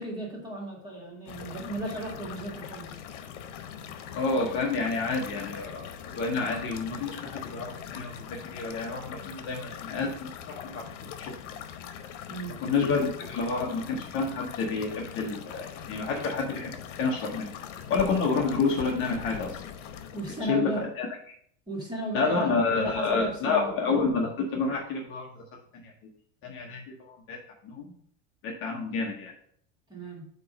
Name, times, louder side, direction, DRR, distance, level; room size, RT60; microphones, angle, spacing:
voice 1, 0.0-3.0 12.3-12.6 20.1-20.9 21.7-23.7 29.9-30.3, right 1 dB, 10° right, -3 dB, 1.9 m, -35 dB
sound 1, 1.3-20.5, left 8 dB, 85° left, 0.9 m, -42 dB
voice 2, 4.1-10.3 10.6-10.8 11.5-11.6 12.6-17.5 17.9-19.6 20.5-20.7 21.0-21.1 22.1-25.4 25.8-25.9 26.4-27.4 27.6-27.9 28.4-29.3, left 4 dB, 35° left, 0 dB, 0.9 m, -29 dB
8.1 x 3.0 x 5.1 m, 0.64 s
supercardioid pair, 160°, 36 cm